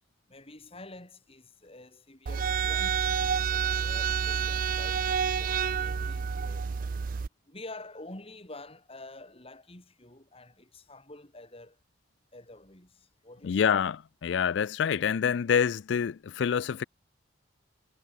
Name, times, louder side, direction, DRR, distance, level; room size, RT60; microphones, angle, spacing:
voice 1, 0.3-6.7 7.5-11.8 12.3-13.8, left 2 dB, 30° left, 4.2 m, -48 dB
sound 1, 2.3-7.3, right 7 dB, 45° right, 0.4 m, -29 dB
voice 2, 13.4-16.9, left 7 dB, 65° left, 0.4 m, -27 dB
head